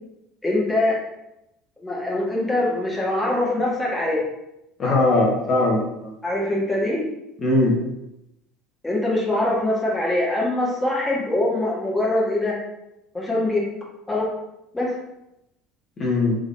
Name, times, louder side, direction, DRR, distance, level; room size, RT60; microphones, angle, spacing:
voice 1, 0.4-0.9 1.8-4.2 6.2-7.0 8.8-12.5 13.1-13.6 14.1-14.2 14.7-14.9, left 1 dB, 15° left, -4 dB, 1.4 m, -23 dB
voice 2, 4.8-6.1 7.4-7.8 16.0-16.4, left 2 dB, 35° left, -2 dB, 1.3 m, -20 dB
3.6 x 3.5 x 2.6 m, 0.87 s
hypercardioid pair, 70°, 0 cm